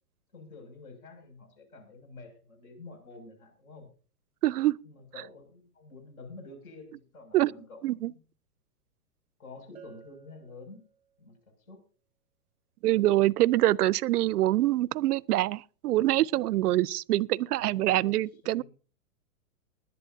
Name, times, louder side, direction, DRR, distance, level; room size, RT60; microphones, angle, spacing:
voice 1, 0.3-3.9 4.8-8.2 9.4-10.8 11.2-11.4 11.7-11.8 13.1-13.3 17.6-18.2 18.4-18.6, left 3 dB, 70° left, 6.4 m, -49 dB
voice 2, 4.4-4.8 7.3-7.5 7.8-8.1 12.8-18.6, right 15 dB, 80° right, 0.5 m, -25 dB
Bell, 9.7-11.4, right 9 dB, 5° right, 0.6 m, -55 dB
20.0 x 11.0 x 2.7 m
hypercardioid pair, 155°, 45 cm